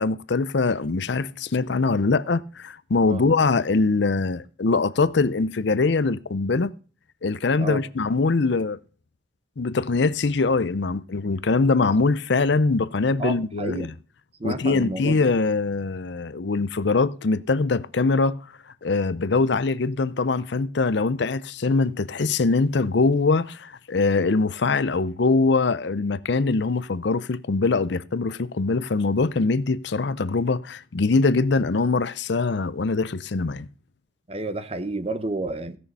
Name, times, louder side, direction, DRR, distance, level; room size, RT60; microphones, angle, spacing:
voice 1, 0.0-6.7 7.2-8.8 9.6-13.9 14.4-18.4 18.8-33.7, left 3 dB, 60° left, 0.6 m, -23 dB
voice 2, 13.2-13.9 14.4-15.3 34.3-35.8, right 2 dB, 30° right, 0.9 m, -30 dB
16.5 x 6.5 x 5.4 m
head